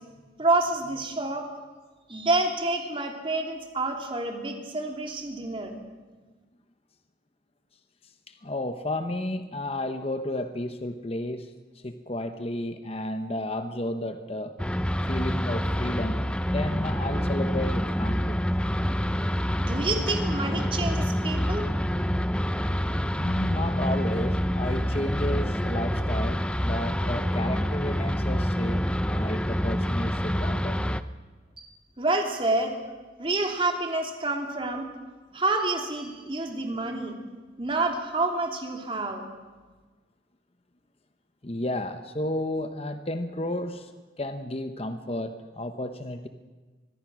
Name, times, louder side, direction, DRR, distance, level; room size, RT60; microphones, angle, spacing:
voice 1, 0.4-1.5 2.1-5.8 19.6-21.7 31.6-31.7 32.0-32.8 33.2-34.9 35.3-37.2 37.6-39.3, right 2 dB, 30° right, 2 dB, 2.9 m, -28 dB
voice 2, 8.3-11.5 11.8-14.5 15.0-18.4 23.1-30.8 41.4-43.9 44.2-46.3, left 1 dB, 30° left, 8 dB, 1.0 m, -32 dB
sound 1, 14.6-31.0, equal, 5° left, 0.6 m, -27 dB
24.5 x 21.5 x 6.3 m, 1.3 s
head